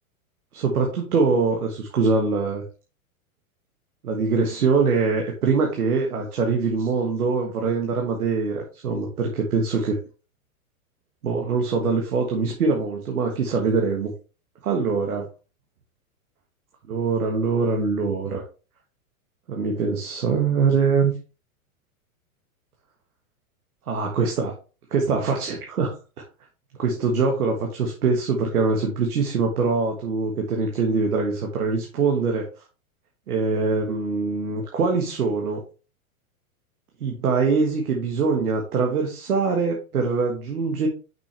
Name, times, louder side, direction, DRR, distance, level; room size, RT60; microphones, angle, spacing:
voice 1, 0.5-2.6 4.0-10.0 11.2-14.1 14.6-15.3 16.9-18.4 19.5-21.1 23.9-24.5 24.9-26.0 26.8-32.5 33.3-35.6 37.0-40.9, right 4 dB, 85° right, 2 dB, 1.5 m, -23 dB
6.1 x 5.9 x 3.3 m, 0.34 s
hypercardioid pair, 120°, 43 cm